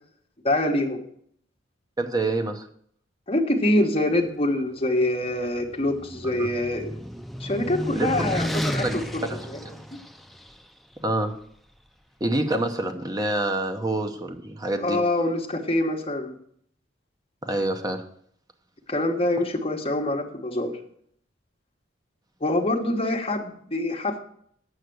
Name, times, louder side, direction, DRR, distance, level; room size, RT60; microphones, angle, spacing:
voice 1, 0.4-1.0 3.3-6.9 7.4-9.2 9.5-9.6 14.8-16.3 18.9-20.7 22.4-24.2, left 1 dB, 30° left, 2 dB, 1.2 m, -25 dB
voice 2, 2.0-2.7 6.4-6.5 8.0-8.3 8.8-9.0 9.3-9.5 11.0-11.3 12.2-15.0 17.4-18.0, right 2 dB, 20° right, 6 dB, 0.9 m, -27 dB
sound 1, 5.3-10.5, equal, ahead, 0.4 m, -32 dB
8.1 x 5.7 x 7.8 m, 0.66 s
head